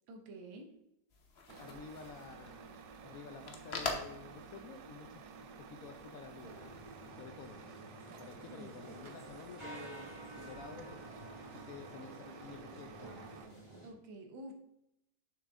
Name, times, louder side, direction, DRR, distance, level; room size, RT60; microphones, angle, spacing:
voice 1, 0.1-0.7 8.5-8.8 13.8-14.5, right 1 dB, 85° right, 4 dB, 1.8 m, -49 dB
sound 1, 1.1-7.1, left 4 dB, 45° left, 0.9 m, -46 dB
Truck, 1.5-13.5, right 5 dB, 65° right, 1.1 m, -52 dB
voice 2, 1.6-2.8 3.0-5.3 5.6-6.6 7.1-7.6 8.2-13.3, left 5 dB, 70° left, 6 dB, 0.8 m, -51 dB
sound 2, 6.4-13.9, right 1 dB, 15° right, 2.2 m, -51 dB
6.9 x 6.4 x 3.5 m, 0.84 s
omnidirectional pair, 2.1 m